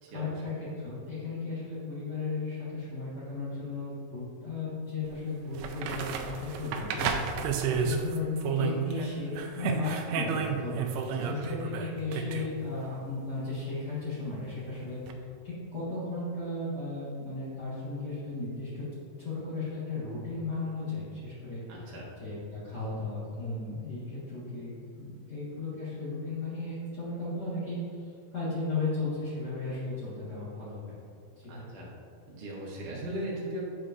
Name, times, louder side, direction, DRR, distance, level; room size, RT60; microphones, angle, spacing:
voice 1, 0.1-10.7 11.2-18.8 19.2-21.9 22.2-31.0 31.3-31.7, left 3 dB, 65° left, -11 dB, 1.0 m, -35 dB
sound 1, 5.0-5.1 5.6-9.1 9.4-12.5 15.1-15.2, right 6 dB, 80° right, 2.1 m, -32 dB
voice 2, 21.7-22.1 31.5-31.9 32.3-33.7, right 1 dB, 65° right, -4 dB, 2.5 m, -38 dB
9.8 x 5.0 x 2.5 m, 2.4 s
omnidirectional pair, 4.4 m